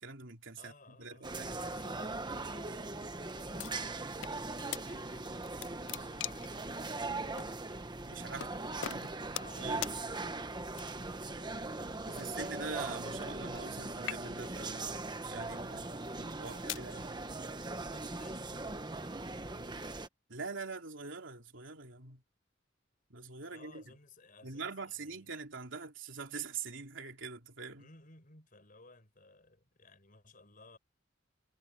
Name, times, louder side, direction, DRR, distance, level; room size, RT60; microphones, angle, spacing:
voice 1, 0.0-1.8 8.1-8.5 8.8-9.1 9.6-9.8 12.1-14.9 15.3-15.9 16.1-17.1 20.3-22.2 23.1-23.8 24.4-27.9, right 4 dB, 75° right, 3.1 m, -44 dB
voice 2, 0.6-8.0 8.5-8.9 9.3-12.6 15.4-17.4 17.8-19.0 19.4-19.9 23.5-25.3 27.8-30.8, left 3 dB, 45° left, 5.4 m, -59 dB
sound 1, 1.2-20.1, right 2 dB, 25° right, 1.2 m, -40 dB
sound 2, 3.6-4.4 4.7-4.8 5.3-6.6 7.4-7.5 8.4-8.5 8.8-9.6 9.8-10.0 10.7-11.1 12.1-13.7 14.0-14.6 15.3-15.5 16.2-16.9, left 12 dB, 65° left, 0.4 m, -42 dB
head